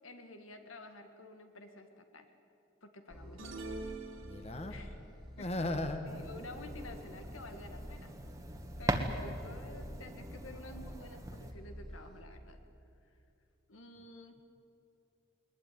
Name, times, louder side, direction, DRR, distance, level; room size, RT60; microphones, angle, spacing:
voice 1, 0.0-2.3 2.8-3.5 4.7-5.0 5.4-5.5 6.1-8.1 8.8-12.6 13.7-14.4, left 2 dB, 90° left, 6 dB, 2.1 m, -51 dB
sound 1, 3.1-12.2, equal, ahead, 2.5 m, -49 dB
sound 2, 3.4-4.9, right 3 dB, 85° right, 2.6 m, -45 dB
voice 2, 4.2-4.7 5.4-6.0, left 1 dB, 30° left, 7 dB, 1.5 m, -36 dB
sound 3, 6.0-11.5, right 1 dB, 15° right, 1.5 m, -40 dB
21.0 x 21.0 x 9.4 m, 2.6 s
head